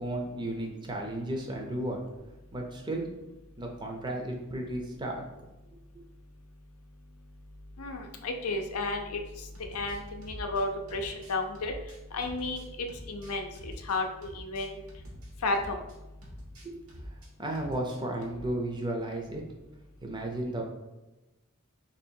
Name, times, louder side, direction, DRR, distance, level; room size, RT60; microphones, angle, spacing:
voice 1, 0.0-2.0 2.5-3.1 3.6-5.2 16.6-16.7 17.0-19.4 20.0-20.6, right 1 dB, 20° right, 1 dB, 0.5 m, -34 dB
voice 2, 7.8-9.2 9.7-11.7 12.1-14.8 15.4-15.8, left 2 dB, 80° left, 4 dB, 0.6 m, -32 dB
sound 1, 9.3-17.3 17.5-18.5, equal, 75° right, 0.9 m, -47 dB
3.1 x 2.7 x 4.4 m, 1.0 s
head